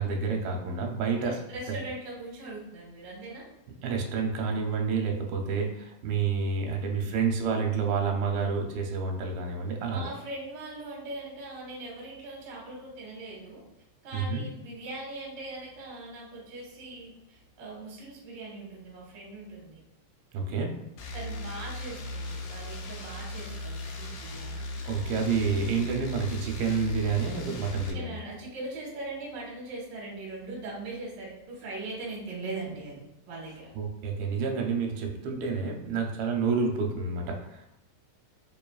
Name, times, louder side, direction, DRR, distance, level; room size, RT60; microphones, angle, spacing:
voice 1, 0.0-1.3 3.8-10.1 14.1-14.4 20.3-20.7 24.9-28.1 33.8-37.7, right 5 dB, 90° right, 2 dB, 2.5 m, -29 dB
voice 2, 1.2-3.5 9.9-13.6 14.0-19.8 21.1-24.9 27.8-33.7, right 2 dB, 70° right, -4 dB, 1.0 m, -40 dB
sound 1, 21.0-27.9, left 1 dB, 85° left, 1.6 m, -37 dB
5.1 x 2.8 x 2.3 m, 0.85 s
omnidirectional pair, 4.1 m